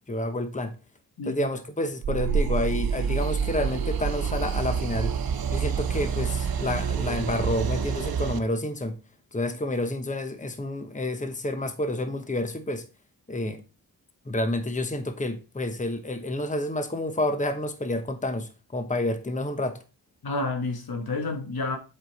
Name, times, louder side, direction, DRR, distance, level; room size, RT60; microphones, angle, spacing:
voice 1, 0.1-0.7 1.2-5.1 5.5-9.0 9.3-12.9 13.3-13.6 14.3-19.8, left 1 dB, 20° left, 1.1 m, -29 dB
voice 2, 1.2-1.5 20.2-21.8, left 3 dB, 70° left, 1.6 m, -30 dB
sound 1, 2.0-8.4, right 6 dB, 65° right, 0.9 m, -27 dB
7.8 x 5.5 x 4.1 m
cardioid pair, 60°, 39 cm